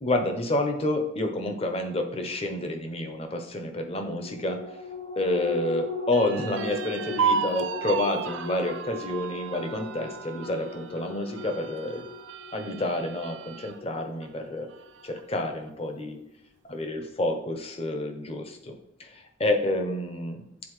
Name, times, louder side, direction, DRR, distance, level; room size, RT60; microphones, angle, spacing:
voice 1, 0.0-4.8 5.2-12.1 12.5-14.7 15.0-16.2 16.6-20.4, left 1 dB, 30° left, 5 dB, 0.7 m, -29 dB
sound 1, 4.1-14.9 15.3-15.4, left 5 dB, 70° left, 2.0 m, -38 dB
sound 2, 6.1-13.8 14.2-14.3 14.7-15.4, right 6 dB, 65° right, 0.4 m, -33 dB
8.4 x 4.1 x 3.1 m, 0.76 s
head